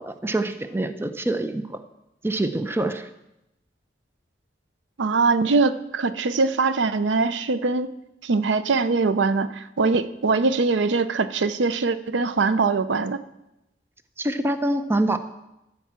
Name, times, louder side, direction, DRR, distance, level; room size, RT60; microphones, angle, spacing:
voice 1, 0.0-1.8 2.2-3.1 14.2-15.2, right 1 dB, 15° right, 9 dB, 0.5 m, -25 dB
voice 2, 5.0-7.9 8.2-13.2, right 4 dB, 80° right, 13 dB, 0.5 m, -22 dB
14.0 x 4.6 x 7.3 m, 0.90 s
head